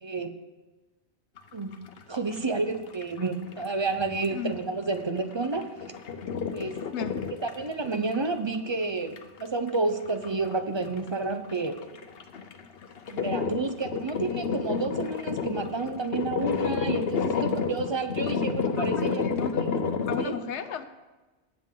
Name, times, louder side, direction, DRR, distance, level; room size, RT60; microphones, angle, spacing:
voice 1, 0.0-0.4 1.5-1.7 2.1-5.6 6.5-6.8 7.4-11.8 13.1-19.2 19.6-19.7 20.1-20.3, right 3 dB, 30° right, 8 dB, 0.7 m, -30 dB
sound 1, 1.4-2.5 2.7-4.6 4.9-8.3 8.5-8.6 9.2-9.4 9.7-9.8 10.1-10.6 10.9-20.3, left 5 dB, 65° left, 1.0 m, -30 dB
voice 2, 4.3-4.6 6.9-7.2 18.8-19.7 20.1-20.9, left 6 dB, 85° left, 10 dB, 1.1 m, -35 dB
18.5 x 7.5 x 3.8 m, 1.2 s
omnidirectional pair, 1.1 m